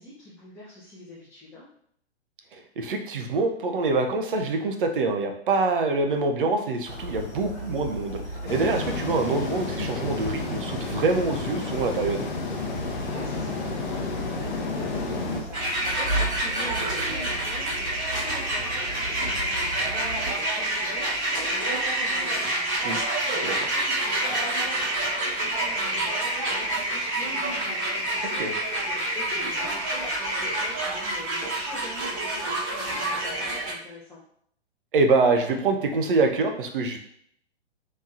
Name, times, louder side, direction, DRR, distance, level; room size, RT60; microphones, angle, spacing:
voice 1, 0.0-1.7 13.0-34.2, left 1 dB, 5° left, -13 dB, 0.8 m, -43 dB
voice 2, 2.5-8.2 8.5-12.2 22.8-23.0 23.4-23.5 28.4-28.5 34.9-37.0, right 3 dB, 50° right, 5 dB, 0.6 m, -25 dB
sound 1, 6.9-20.3, right 1 dB, 80° left, 1.0 m, -36 dB
sound 2, 8.5-15.4, left 3 dB, 45° left, 0.7 m, -31 dB
sound 3, 15.5-33.7, right 1 dB, 25° right, 1.3 m, -28 dB
3.5 x 3.1 x 2.5 m, 0.66 s
figure-of-eight pair, 120°, 33 cm